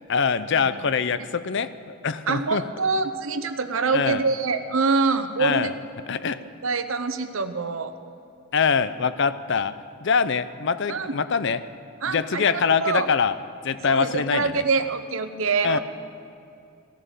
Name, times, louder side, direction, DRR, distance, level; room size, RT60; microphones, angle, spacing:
voice 1, 0.1-2.6 3.9-4.2 5.4-5.7 6.1-6.4 8.5-11.6 12.1-13.4 13.6-14.6 15.6-15.8, left 5 dB, 55° left, 14 dB, 0.5 m, -24 dB
voice 2, 2.3-5.7 6.6-7.9 10.9-11.2 12.0-13.1 13.9-15.8, right 4 dB, 65° right, 10 dB, 0.8 m, -25 dB
16.5 x 11.5 x 6.8 m, 2.6 s
head